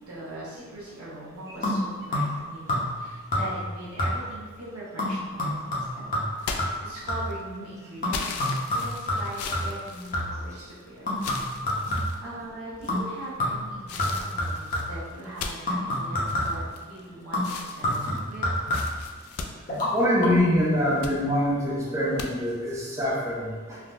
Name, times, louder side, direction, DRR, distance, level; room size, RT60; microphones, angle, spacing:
voice 1, 0.0-6.1 6.5-11.3 12.2-18.5, right 1 dB, 85° right, -7 dB, 0.8 m, -41 dB
sound 1, 1.6-2.4 2.7-3.1 3.3-3.7 4.0-4.4 5.0-7.4 8.0-10.5 11.1-12.3 12.9-13.1 13.4-15.1 15.7-16.7 17.3-19.1 19.7-19.9 20.2-20.3, left 1 dB, 40° left, 0.7 m, -28 dB
sound 2, 6.4-7.4 8.1-10.7 11.2-12.2 12.8-13.3 13.9-17.0 17.4-20.4 20.8-21.2 22.2-22.3, left 4 dB, 80° left, 0.3 m, -38 dB
voice 2, 19.9-23.8, equal, 15° right, -6 dB, 0.5 m, -24 dB
3.5 x 2.2 x 2.5 m, 1.5 s
head